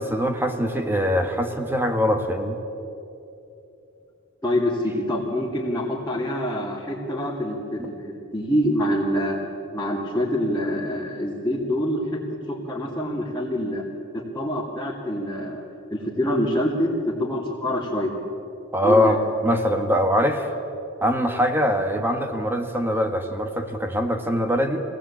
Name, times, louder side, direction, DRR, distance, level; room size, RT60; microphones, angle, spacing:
voice 1, 0.0-2.6 18.7-20.5 21.0-24.8, equal, 10° right, 5 dB, 1.8 m, -22 dB
voice 2, 4.4-9.4 9.7-12.2 12.5-13.8 14.1-18.1 18.8-19.2, equal, 15° left, -6 dB, 2.7 m, -26 dB
24.5 x 18.5 x 8.7 m, 2.8 s
head